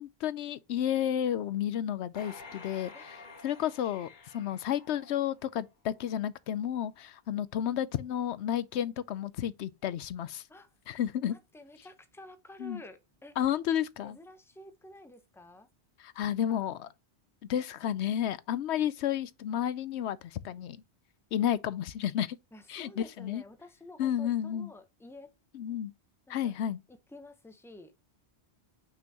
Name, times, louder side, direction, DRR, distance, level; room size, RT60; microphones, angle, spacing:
voice 1, 0.0-3.2 3.4-10.4 10.9-11.3 12.6-12.8 13.4-14.2 16.0-16.9 17.5-20.8 21.3-22.4 22.7-23.4 24.0-24.7 25.5-25.9 26.3-26.8, left 10 dB, 85° left, 0.9 m, -31 dB
sound 1, 2.1-5.6 6.1-6.2, left 4 dB, 45° left, 1.2 m, -50 dB
voice 2, 11.3-13.4 14.0-15.7 16.2-16.7 22.5-25.3 26.3-26.5 26.9-27.9, left 1 dB, 5° left, 0.8 m, -51 dB
5.9 x 5.8 x 2.9 m
omnidirectional pair, 1.1 m